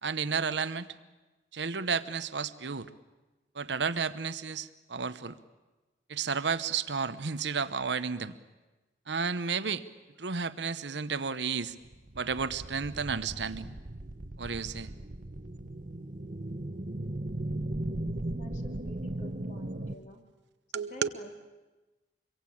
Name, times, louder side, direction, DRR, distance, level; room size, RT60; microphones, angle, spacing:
voice 1, 0.0-0.9 1.5-2.9 3.5-5.3 6.1-8.4 9.1-9.8 10.2-11.7 12.1-13.7 14.4-14.9 20.7-21.1, right 5 dB, 80° right, 12 dB, 1.0 m, -32 dB
sound 1, 11.8-19.9, right 1 dB, 45° right, 1.0 m, -37 dB
voice 2, 18.3-20.2 20.7-21.3, left 1 dB, 45° left, 3 dB, 3.0 m, -50 dB
26.0 x 23.0 x 8.7 m, 1.2 s
head